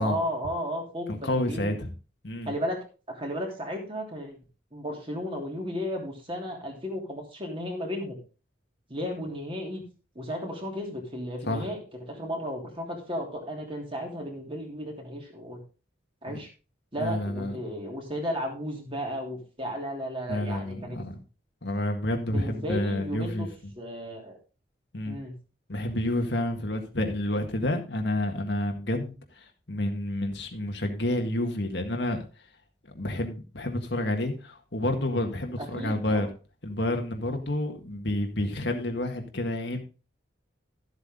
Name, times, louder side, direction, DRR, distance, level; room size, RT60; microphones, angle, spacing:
voice 1, 0.0-1.8 2.4-2.8 3.1-4.4 4.7-8.2 8.9-9.8 10.1-15.6 16.2-16.5 16.9-21.0 22.2-23.5 23.8-24.4 25.0-25.3 35.6-36.3, equal, 25° right, 0 dB, 3.1 m, -34 dB
voice 2, 1.1-1.9 2.2-2.5 11.4-11.7 16.3-16.4 17.0-17.6 20.3-21.2 21.6-23.5 24.9-25.2 25.7-32.3 32.9-36.3 36.6-39.8, left 1 dB, 60° left, 4 dB, 1.7 m, -29 dB
13.0 x 8.0 x 3.7 m, 0.33 s
head